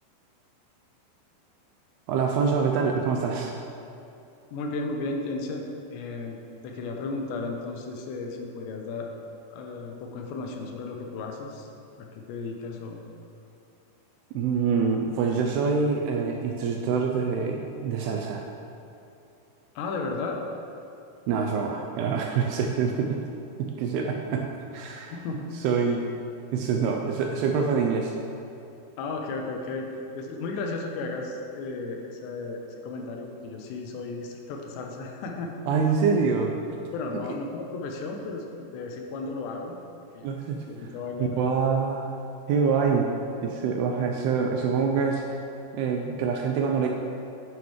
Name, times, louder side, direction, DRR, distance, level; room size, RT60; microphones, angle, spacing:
voice 1, 2.1-3.5 14.3-18.5 21.3-23.2 23.6-25.2 25.5-26.0 26.5-28.1 35.7-36.5 40.2-40.9 41.2-42.2 42.5-43.1 43.4-45.2 45.7-46.9, right 5 dB, 85° right, 1 dB, 2.3 m, -25 dB
voice 2, 4.5-5.6 5.9-6.4 6.6-9.1 9.5-11.7 12.0-13.0 19.8-20.4 25.1-25.4 29.0-35.5 36.9-39.7 40.1-40.3 40.6-41.4, left 3 dB, 85° left, 2 dB, 2.9 m, -34 dB
9.3 x 9.1 x 3.1 m, 2.7 s
omnidirectional pair, 5.0 m